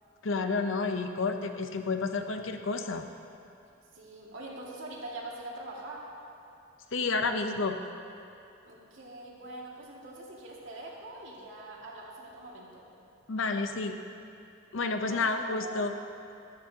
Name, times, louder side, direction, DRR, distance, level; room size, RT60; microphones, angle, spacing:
voice 1, 0.2-3.0 6.9-7.8 13.3-14.0 14.7-15.9, left 3 dB, 75° left, 6 dB, 0.7 m, -30 dB
voice 2, 3.9-6.0 8.7-12.9 15.0-15.3 15.6-15.8, right 2 dB, 75° right, -4 dB, 2.2 m, -43 dB
14.0 x 12.5 x 2.9 m, 2.7 s
head